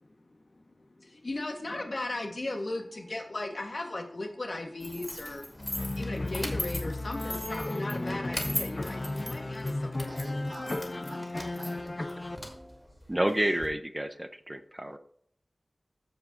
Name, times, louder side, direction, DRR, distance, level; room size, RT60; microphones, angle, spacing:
voice 1, 0.8-5.5 5.9-10.4, left 2 dB, 55° left, 3 dB, 1.7 m, -37 dB
sound 1, 4.8-13.7, left 1 dB, 20° left, 2.2 m, -40 dB
sound 2, 5.6-12.4, left 2 dB, 40° left, 0.6 m, -34 dB
voice 2, 10.1-12.1, right 1 dB, 65° right, -1 dB, 3.1 m, -48 dB
voice 3, 12.3-15.0, right 1 dB, 15° right, 9 dB, 0.7 m, -31 dB
14.5 x 4.8 x 3.8 m, 0.64 s
wide cardioid pair, 75°, 0 cm